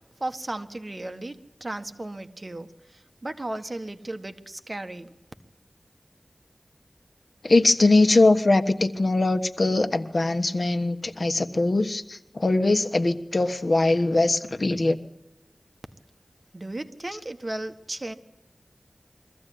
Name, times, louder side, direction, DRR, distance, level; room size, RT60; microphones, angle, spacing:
voice 1, 0.2-5.1 16.5-18.1, right 1 dB, 45° right, 1.5 m, -35 dB
voice 2, 7.4-15.0, left 2 dB, 65° left, 1.3 m, -21 dB
23.5 x 15.0 x 9.4 m
wide cardioid pair, 60°, 0 cm